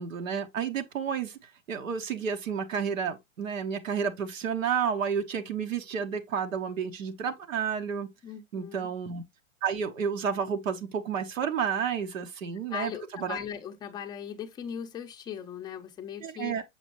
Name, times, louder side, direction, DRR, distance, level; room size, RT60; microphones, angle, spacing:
voice 1, 0.0-1.4 1.7-8.1 8.5-9.2 9.6-13.4 16.2-16.6, right 7 dB, 75° right, 1.1 m, -31 dB
voice 2, 8.2-8.9 12.7-16.6, left 8 dB, 10° left, 0.6 m, -39 dB
7.1 x 4.9 x 3.0 m
hypercardioid pair, 135°, 39 cm